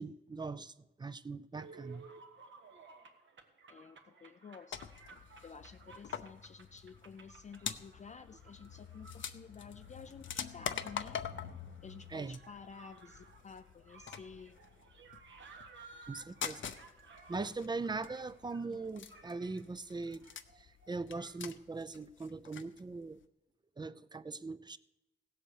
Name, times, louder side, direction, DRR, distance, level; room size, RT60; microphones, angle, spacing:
voice 1, 0.0-2.1 12.1-12.4 16.1-16.6 17.3-20.2 20.6-23.2 23.8-24.8, right 3 dB, 20° right, 15 dB, 0.4 m, -41 dB
sound 1, 1.6-21.5, right 4 dB, 75° right, 1.4 m, -58 dB
voice 2, 3.7-4.8 5.4-11.2 11.8-14.5 18.7-18.8, left 6 dB, 40° left, 9 dB, 0.4 m, -52 dB
sound 2, 4.7-22.8 23.1-23.2, left 8 dB, 80° left, 0.7 m, -46 dB
17.0 x 8.0 x 6.6 m, 0.94 s
wide cardioid pair, 150°, 20 cm